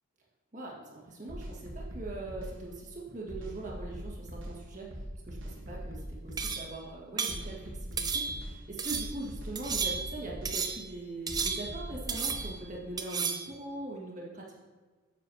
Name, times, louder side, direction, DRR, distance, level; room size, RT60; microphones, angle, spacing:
voice 1, 0.5-5.0 5.2-14.5, right 2 dB, 35° right, -3 dB, 1.6 m, -41 dB
sound 1, 1.3-2.6 3.3-4.6 4.9-6.6 7.3-8.6 8.9-10.6 11.3-12.6, equal, 65° right, 1.2 m, -41 dB
sound 2, 6.4-6.8 7.2-7.5 8.0-8.5 8.8-9.2 9.5-10.2 10.4-10.9 11.3-11.8 12.1-12.6 13.0-13.5, right 5 dB, 20° right, 0.4 m, -33 dB
9.3 x 7.2 x 2.7 m, 1.3 s
head